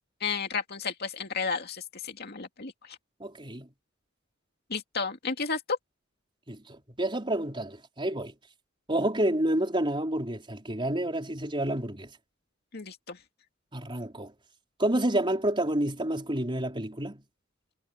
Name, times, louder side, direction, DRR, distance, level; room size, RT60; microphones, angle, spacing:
voice 1, 0.2-3.0 4.7-5.8 12.7-13.2, left 5 dB, 55° left, 2.4 m, -32 dB
voice 2, 3.2-3.7 6.5-8.3 8.9-12.1 13.7-14.3 14.8-17.2, right 1 dB, 25° right, 4.9 m, -29 dB
head